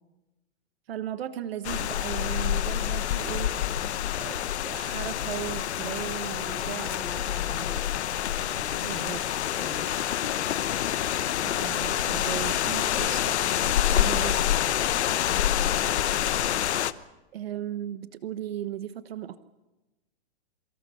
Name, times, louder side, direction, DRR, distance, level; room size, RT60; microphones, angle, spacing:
voice 1, 0.9-3.6 4.2-6.9 8.8-9.2 11.4-14.4 17.3-19.4, right 11 dB, 65° right, 12 dB, 1.2 m, -36 dB
sound 1, 1.6-16.9, left 11 dB, 80° left, 1.1 m, -27 dB
voice 2, 6.4-8.2 8.5-10.6, left 2 dB, ahead, 2 dB, 3.2 m, -44 dB
27.5 x 25.0 x 5.8 m, 1.0 s
supercardioid pair, 180°, 33 cm